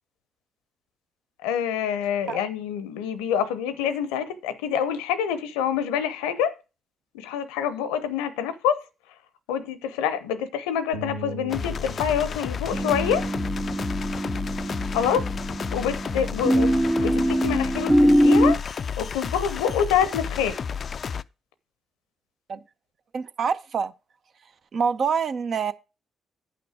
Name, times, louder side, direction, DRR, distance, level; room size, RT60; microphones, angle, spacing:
voice 1, 1.4-6.5 7.1-8.8 9.5-13.3 14.9-15.3 15.7-18.6 19.0-20.6, left 8 dB, 75° left, 0.7 m, -26 dB
Bass guitar, 10.9-17.2, equal, 85° right, 1.0 m, -43 dB
sound 1, 11.5-21.2, left 6 dB, 50° left, 0.3 m, -32 dB
sound 2, 12.7-18.5, equal, 10° right, 0.6 m, -23 dB
voice 2, 23.1-23.9 24.7-25.7, right 6 dB, 55° right, 0.6 m, -26 dB
9.0 x 5.8 x 4.8 m
figure-of-eight pair, 40°, 0 cm